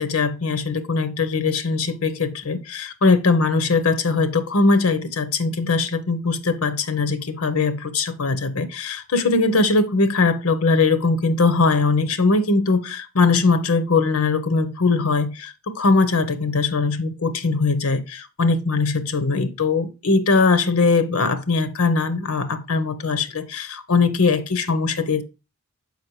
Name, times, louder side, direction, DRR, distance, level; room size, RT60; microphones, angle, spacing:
voice 1, 0.0-25.2, left 4 dB, 75° left, 0.8 m, -21 dB
6.6 x 5.2 x 3.1 m
head